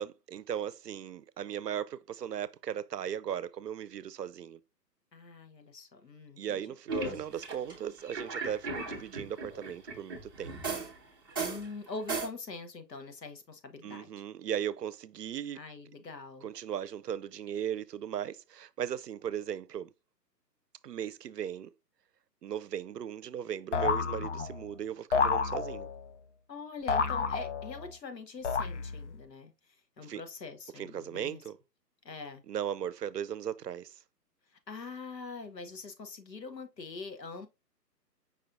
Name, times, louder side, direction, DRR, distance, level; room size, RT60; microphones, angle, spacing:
voice 1, 0.0-4.6 6.4-10.8 13.8-15.6 16.4-19.9 20.8-21.7 22.4-25.9 30.0-30.2 30.8-31.6 32.5-34.0, right 9 dB, 70° right, 0.6 m, -37 dB
voice 2, 5.1-6.8 11.4-14.1 15.5-16.5 26.5-31.4 32.0-32.4 34.7-37.5, left 4 dB, 75° left, 1.2 m, -44 dB
sound 1, 6.9-11.0 11.3-12.3, right 3 dB, 15° right, 0.6 m, -36 dB
sound 2, 23.7-24.7 25.1-26.1 26.9-27.9 28.4-29.2, left 5 dB, 45° left, 0.5 m, -30 dB
5.4 x 3.8 x 2.6 m
figure-of-eight pair, 140°, 50 cm